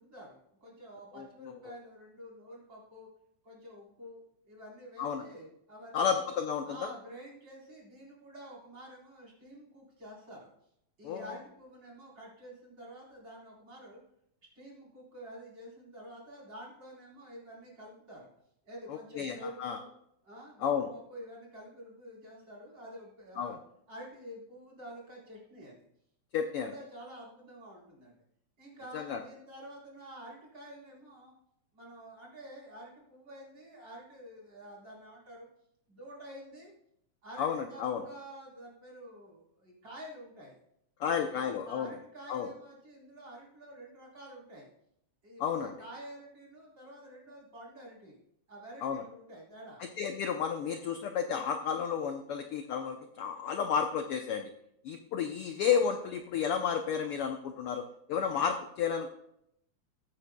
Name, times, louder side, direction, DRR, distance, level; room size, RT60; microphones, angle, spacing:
voice 1, 0.0-3.1 3.4-6.1 6.6-10.5 11.0-14.0 14.5-18.3 18.6-19.9 20.2-23.6 23.9-25.8 26.3-28.2 28.6-31.3 31.7-35.5 35.9-36.7 37.2-40.6 41.0-44.7 45.2-48.2 48.5-49.8, equal, 35° right, -4 dB, 4.5 m, -49 dB
voice 2, 1.1-1.6 5.0-5.2 5.9-6.9 11.0-11.2 18.9-19.8 20.6-20.9 23.4-23.6 26.3-26.7 28.9-29.2 37.4-38.1 41.0-41.9 42.3-42.5 45.4-45.7 48.8-49.0 50.0-54.5 54.8-59.1, left 7 dB, 80° left, 5 dB, 1.3 m, -32 dB
21.0 x 8.8 x 2.2 m, 0.76 s
omnidirectional pair, 3.4 m